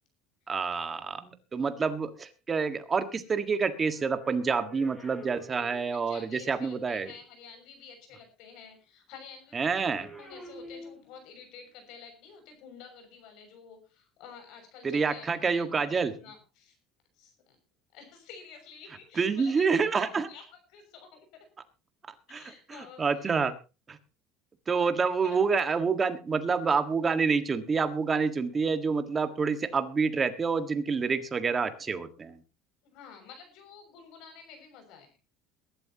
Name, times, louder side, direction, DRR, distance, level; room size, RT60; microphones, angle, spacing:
voice 1, 0.5-7.1 9.5-10.1 14.8-16.1 19.1-20.3 22.3-22.4 22.7-23.5 23.9-24.0 24.7-32.4, right 5 dB, 20° right, 9 dB, 1.6 m, -28 dB
sound 1, 3.6-6.4 9.5-11.5 12.3-12.5, equal, 10° left, 6.5 m, -49 dB
voice 2, 5.9-9.8 10.2-16.8 17.1-17.6 17.9-21.5 22.3-23.3 25.2-25.4 32.8-35.1, left 6 dB, 65° left, 5 dB, 6.4 m, -50 dB
22.5 x 12.5 x 2.9 m, 0.31 s
cardioid pair, 150°, 0 cm